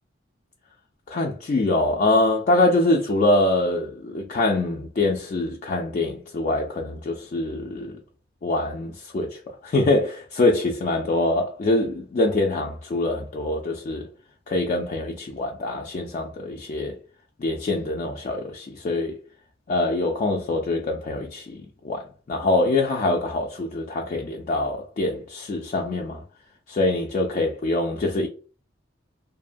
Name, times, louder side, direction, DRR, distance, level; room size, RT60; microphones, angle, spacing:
voice 1, 1.1-7.9 8.4-14.1 14.5-17.0 17.4-19.2 19.7-26.2 26.7-28.3, left 2 dB, 40° left, 0.3 m, -24 dB
2.6 x 2.2 x 2.5 m
head